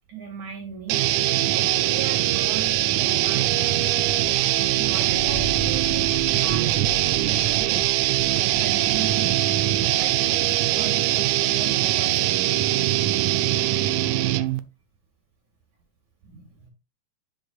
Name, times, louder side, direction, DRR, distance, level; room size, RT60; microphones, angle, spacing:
voice 1, 0.1-1.0 1.5-4.1 4.4-6.1 6.4-6.8 7.2-7.9 8.6-9.5 9.9-12.9 16.2-16.7, right 6 dB, 60° right, 3 dB, 2.9 m, -38 dB
sound 1, 0.9-14.6, right 15 dB, 80° right, 1.8 m, -22 dB
sound 2, 2.3-12.6, equal, 40° left, 0.8 m, -40 dB
10.5 x 6.2 x 2.3 m, 0.26 s
omnidirectional pair, 4.1 m